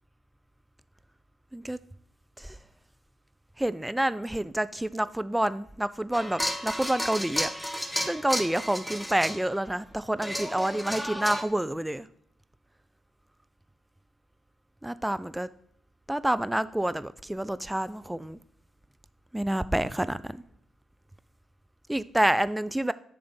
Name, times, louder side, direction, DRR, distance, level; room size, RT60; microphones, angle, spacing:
voice 1, 3.6-7.5 8.1-12.1 14.8-15.5 16.1-18.4 19.3-20.4 21.9-22.9, right 1 dB, 10° right, 15 dB, 0.4 m, -28 dB
sound 1, 6.1-9.6 10.2-11.4, equal, 5° left, 0.8 m, -32 dB
7.0 x 3.4 x 5.3 m, 0.64 s
hypercardioid pair, 45°, 0 cm